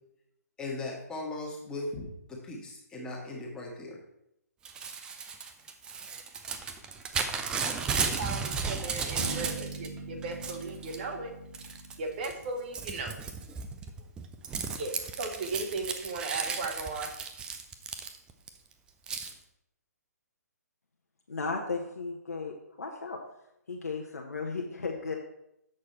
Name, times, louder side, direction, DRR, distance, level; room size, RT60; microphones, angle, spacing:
voice 1, 0.6-4.0, left 2 dB, 10° left, -2 dB, 1.5 m, -38 dB
Crumpling crinkling / Tearing, 4.6-9.9 10.2-11.0 11.5-11.9 12.2-18.5 19.1-19.3, right 5 dB, 10° right, 0.4 m, -34 dB
voice 2, 7.9-11.3 12.0-13.3 14.8-17.2, right 3 dB, 35° right, 4 dB, 1.0 m, -37 dB
sound 1, 9.2-13.2, right 3 dB, 85° right, 1.7 m, -42 dB
voice 3, 21.3-23.2 23.7-25.1, left 4 dB, 65° left, 1 dB, 1.0 m, -35 dB
7.6 x 6.4 x 4.3 m, 0.80 s
figure-of-eight pair, 130°, 9 cm